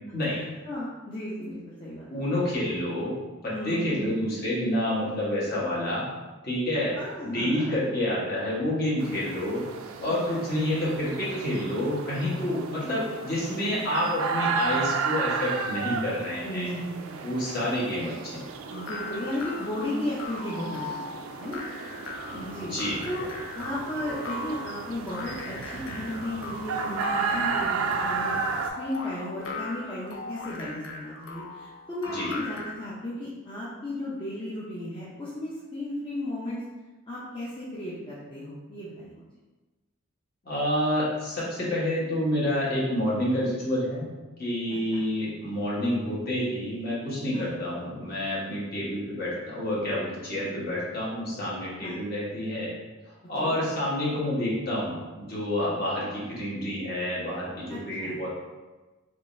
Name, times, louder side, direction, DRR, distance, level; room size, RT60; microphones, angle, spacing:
voice 1, 0.6-2.5 3.5-4.0 7.0-7.8 10.0-10.4 12.8-12.9 16.4-17.2 18.7-21.6 22.3-22.7 23.1-23.3 23.5-28.5 28.8-36.6 37.1-39.2 44.7-45.0 47.3-47.6 51.8-52.0 53.4-53.6 57.7-58.2, left 1 dB, 25° left, -9 dB, 0.5 m, -35 dB
voice 2, 2.1-3.2 3.4-6.1 6.4-7.0 7.2-9.6 10.0-16.7 17.2-18.4 22.7-23.0 32.1-32.3 40.4-44.0 44.4-52.7 53.3-58.3, left 1 dB, 45° left, -7 dB, 1.2 m, -28 dB
sound 1, 9.0-28.7, right 5 dB, 85° right, 0.3 m, -33 dB
sound 2, 18.7-32.9, left 3 dB, 70° left, 0.5 m, -39 dB
3.6 x 3.1 x 2.6 m, 1.2 s
head